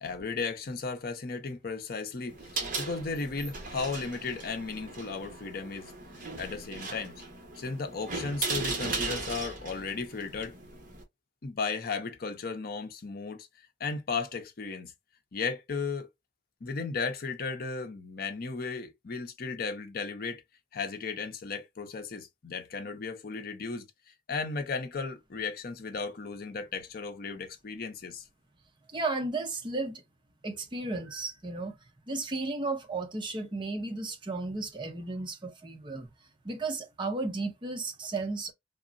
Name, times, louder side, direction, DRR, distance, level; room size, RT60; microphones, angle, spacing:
voice 1, 0.0-5.9 6.4-7.2 7.6-10.6 11.4-13.5 13.8-14.9 15.3-16.1 16.6-20.4 20.7-23.9 24.3-28.2, left 4 dB, 55° left, 0.6 m, -35 dB
sound 1, 2.3-11.0, right 3 dB, 50° right, 1.0 m, -37 dB
voice 2, 28.9-30.0 30.4-31.8 32.1-36.1 36.4-38.5, right 3 dB, 25° right, 0.6 m, -34 dB
3.5 x 2.0 x 2.4 m
head